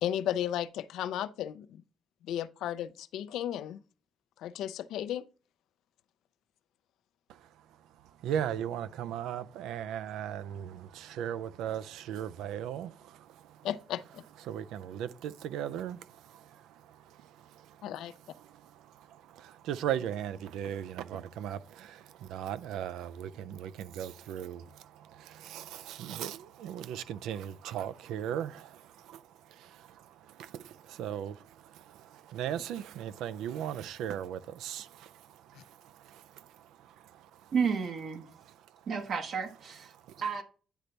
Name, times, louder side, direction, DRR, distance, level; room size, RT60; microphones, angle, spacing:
voice 1, 0.0-1.8 2.2-3.8 4.4-5.2 13.6-14.2 17.8-18.1, left 11 dB, 85° left, 0.4 m, -34 dB
voice 2, 7.3-13.7 14.4-37.5 38.3-38.8 39.9-40.2, right 10 dB, 90° right, 0.4 m, -39 dB
voice 3, 37.5-38.2 38.9-40.4, right 6 dB, 65° right, 1.0 m, -32 dB
9.9 x 3.3 x 4.0 m
cardioid pair, 90°, 0 cm